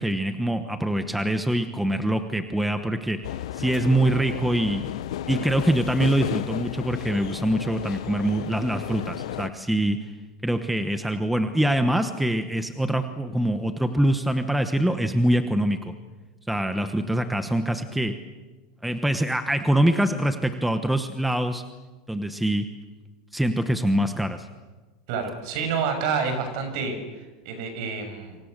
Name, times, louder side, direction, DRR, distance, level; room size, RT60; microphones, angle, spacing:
voice 1, 0.0-3.2 3.5-4.8 5.3-10.1 10.4-15.9 16.5-18.1 18.8-21.6 22.1-22.7 23.3-24.5, right 1 dB, ahead, 7 dB, 1.1 m, -24 dB
sound 1, 3.2-9.5, left 12 dB, 80° left, 0.8 m, -33 dB
voice 2, 25.1-26.9 27.4-28.4, right 5 dB, 55° right, 7 dB, 6.8 m, -28 dB
28.0 x 24.5 x 6.7 m, 1.3 s
supercardioid pair, 160°, 3 cm